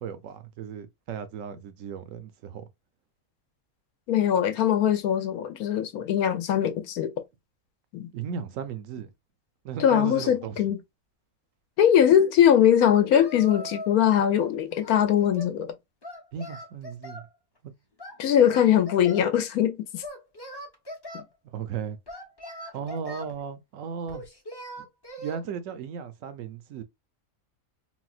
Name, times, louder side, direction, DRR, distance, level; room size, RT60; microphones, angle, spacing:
voice 1, 0.0-2.7 8.1-9.1 9.6-10.7 16.3-17.2 17.6-17.8 21.5-22.0 22.7-24.3 24.8-24.9 25.2-26.8, right 7 dB, 65° right, 0.9 m, -36 dB
voice 2, 4.1-7.1 7.9-8.1 9.8-10.8 11.8-15.7 18.2-20.0, left 9 dB, 80° left, 1.1 m, -21 dB
Singing, 13.1-14.0 14.3-15.6 16.0-17.3 18.0-19.3 20.0-21.2 22.1-23.3 24.1-25.4, equal, 25° left, 0.6 m, -41 dB
4.0 x 2.2 x 2.4 m
omnidirectional pair, 1.6 m